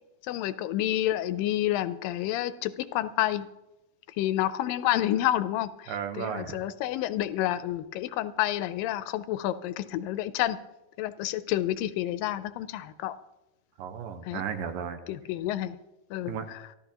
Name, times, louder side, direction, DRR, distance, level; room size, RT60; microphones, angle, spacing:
voice 1, 0.2-3.5 4.1-10.6 11.0-13.1 14.2-14.4 15.1-15.8 16.1-16.7, left 13 dB, 80° left, 13 dB, 2.3 m, -29 dB
voice 2, 5.9-6.6 13.8-15.0 16.3-16.5, right 7 dB, 80° right, 7 dB, 2.7 m, -34 dB
24.0 x 14.0 x 3.0 m, 0.97 s
omnidirectional pair, 4.0 m